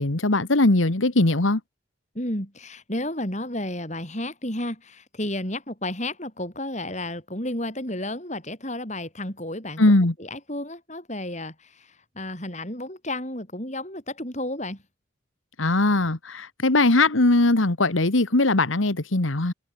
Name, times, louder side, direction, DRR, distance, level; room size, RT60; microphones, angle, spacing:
voice 1, 0.0-1.6 9.8-10.1 15.6-19.5, left 2 dB, 85° left, 1.8 m, -20 dB
voice 2, 2.2-9.8 10.2-14.8, left 1 dB, 35° left, 7.4 m, -32 dB
head